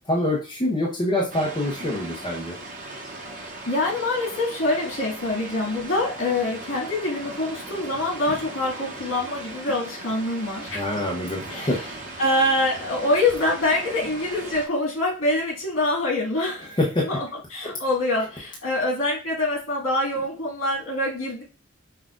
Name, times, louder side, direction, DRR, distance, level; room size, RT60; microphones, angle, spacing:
voice 1, 0.1-2.5 10.7-11.8 16.8-17.0, left 1 dB, 20° left, -3 dB, 0.7 m, -25 dB
sound 1, 1.3-14.7, right 2 dB, 40° right, 0.8 m, -38 dB
voice 2, 3.7-10.9 11.5-11.8 12.2-16.8 17.0-21.4, left 1 dB, 80° left, -3 dB, 1.8 m, -25 dB
5.6 x 2.3 x 2.5 m, 0.33 s
head